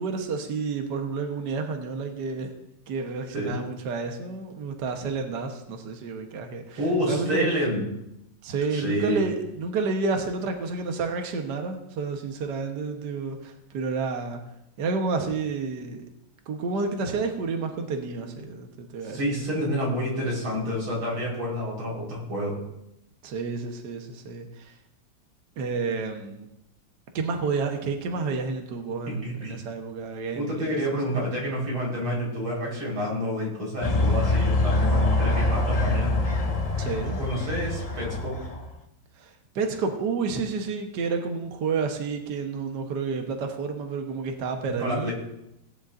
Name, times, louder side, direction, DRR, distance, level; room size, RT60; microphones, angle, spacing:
voice 1, 0.0-2.5 2.9-7.5 8.4-14.4 14.8-16.0 16.5-19.5 23.2-24.8 25.6-26.5 27.1-30.8 31.1-31.2 36.8-37.2 39.2-45.1, right 4 dB, 60° right, 4 dB, 1.6 m, -30 dB
voice 2, 6.8-7.8 8.7-9.2 19.0-22.6 29.1-29.5 30.4-36.1 37.2-38.4 44.8-45.1, equal, 85° right, -4 dB, 5.5 m, -28 dB
sound 1, 33.8-38.7, left 2 dB, 35° left, 0.6 m, -24 dB
18.5 x 10.0 x 2.6 m, 0.85 s
omnidirectional pair, 2.2 m